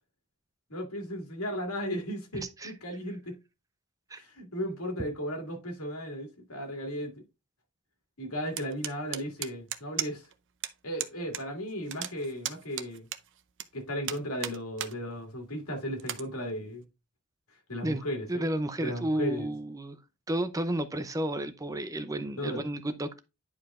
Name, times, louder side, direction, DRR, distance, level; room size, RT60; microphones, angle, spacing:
voice 1, 0.7-3.4 4.1-7.2 8.2-10.2 10.8-13.1 13.7-16.8 17.7-18.5 18.8-19.5 22.4-22.6, equal, 85° left, 2.2 m, -35 dB
voice 2, 2.3-2.7 4.1-4.2 17.8-18.0 18.3-20.0 20.3-23.2, right 1 dB, 15° right, 0.5 m, -32 dB
sound 1, 8.6-10.3 10.6-10.7 11.0-11.4 11.7-13.7 14.1-14.9 15.4-15.5 16.0-16.2, right 12 dB, 60° right, 0.6 m, -35 dB
10.5 x 4.8 x 2.4 m
head